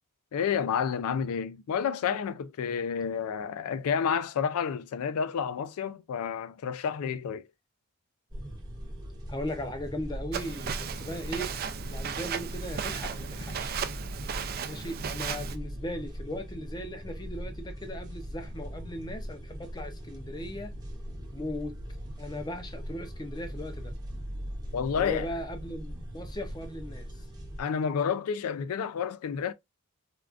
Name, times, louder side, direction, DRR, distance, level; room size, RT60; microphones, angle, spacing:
voice 1, 0.3-7.4 24.7-25.3 27.6-29.5, left 7 dB, 75° left, 0.3 m, -30 dB
sound 1, 8.3-27.6, equal, 15° right, 0.7 m, -40 dB
voice 2, 9.3-11.5 11.9-13.8 14.7-20.8 21.3-21.8 22.2-23.9 24.9-27.3, left 1 dB, 20° left, 0.5 m, -38 dB
Walk footsteps, 10.3-15.6, right 7 dB, 40° right, 0.3 m, -35 dB
3.5 x 2.3 x 2.3 m
head